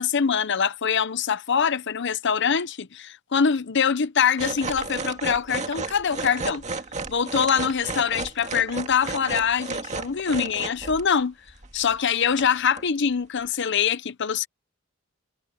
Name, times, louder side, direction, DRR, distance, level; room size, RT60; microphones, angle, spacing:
voice 1, 0.0-6.6 7.1-11.3 11.7-14.5, left 7 dB, 60° left, 0.8 m, -24 dB
sound 1, 4.4-11.1 11.5-12.0 12.3-12.8 13.4-13.5, right 3 dB, 35° right, 1.9 m, -33 dB
head